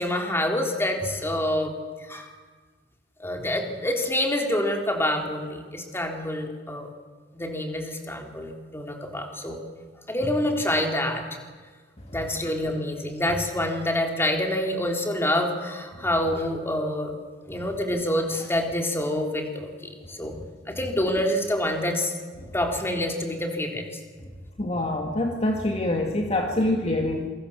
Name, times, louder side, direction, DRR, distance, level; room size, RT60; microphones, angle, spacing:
voice 1, 0.0-1.7 2.1-2.3 3.2-6.9 7.3-9.6 10.1-11.2 12.1-17.1 17.5-20.4 20.8-22.1 22.5-23.8, left 1 dB, 15° left, 2 dB, 3.6 m, -27 dB
voice 2, 24.6-27.3, left 1 dB, 35° left, 2 dB, 2.2 m, -25 dB
27.5 x 24.0 x 7.3 m, 1.4 s
head